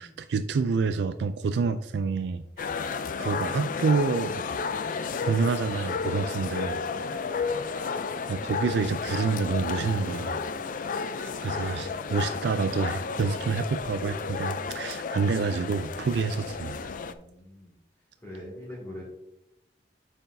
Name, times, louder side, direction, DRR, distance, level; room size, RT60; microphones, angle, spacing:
voice 1, 0.0-2.7 3.2-4.4 5.2-6.8 7.6-7.8 8.3-10.4 11.2-16.8, right 4 dB, 70° right, 10 dB, 0.3 m, -28 dB
sound 1, 2.6-17.1, left 5 dB, 50° left, 0.4 m, -32 dB
voice 2, 17.0-17.7 18.2-19.0, left 1 dB, 15° left, -9 dB, 2.4 m, -43 dB
8.6 x 5.9 x 2.7 m, 0.82 s
head